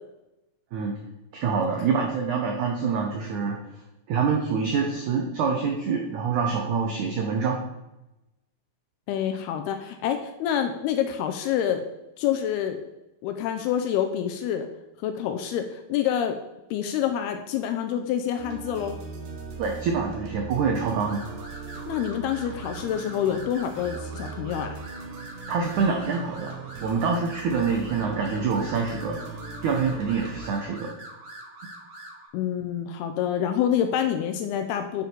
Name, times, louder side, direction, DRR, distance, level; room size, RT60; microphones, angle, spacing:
voice 1, 1.3-3.6 4.1-7.6 19.6-21.3 25.5-26.5 26.8-29.2 29.6-30.9, right 5 dB, 80° right, 1 dB, 1.7 m, -26 dB
voice 2, 9.1-11.9 12.2-12.8 13.2-14.7 15.0-16.4 16.7-19.0 21.9-24.8 32.3-35.1, left 9 dB, 80° left, 6 dB, 2.5 m, -27 dB
sound 1, 18.4-30.5, right 5 dB, 65° right, 2.3 m, -40 dB
sound 2, 21.1-32.3, right 1 dB, 35° right, 2.1 m, -44 dB
9.3 x 6.9 x 4.6 m, 0.93 s
omnidirectional pair, 4.9 m